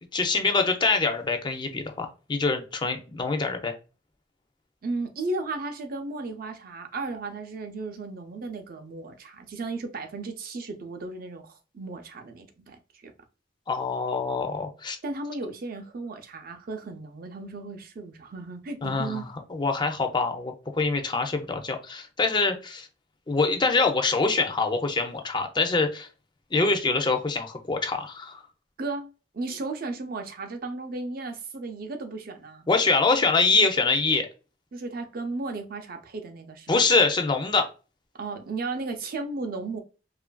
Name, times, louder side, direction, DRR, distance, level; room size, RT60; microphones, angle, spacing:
voice 1, 0.1-3.7 13.7-15.0 18.8-19.2 19.5-22.9 23.3-26.1 26.5-28.4 32.7-34.3 36.7-37.7, left 3 dB, 25° left, 0.4 m, -24 dB
voice 2, 4.8-13.1 15.0-19.3 28.8-32.7 34.7-36.8 38.2-39.8, right 3 dB, 50° right, 0.5 m, -35 dB
3.0 x 2.4 x 2.2 m
head